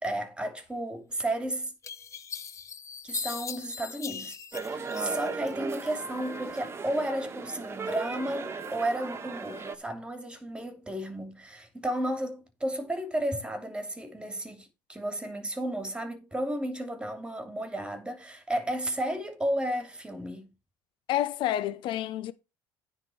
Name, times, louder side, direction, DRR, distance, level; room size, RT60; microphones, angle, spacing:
voice 1, 0.0-1.7 3.0-20.5, right 1 dB, 10° right, 2.8 m, -33 dB
sound 1, 1.1-1.2 1.8-5.5 5.9-6.6, left 7 dB, 35° left, 0.9 m, -40 dB
sound 2, 4.5-9.7, right 4 dB, 30° right, 1.5 m, -37 dB
voice 2, 21.1-22.3, left 12 dB, 65° left, 0.9 m, -29 dB
9.6 x 4.1 x 7.0 m
cardioid pair, 105°, 9 cm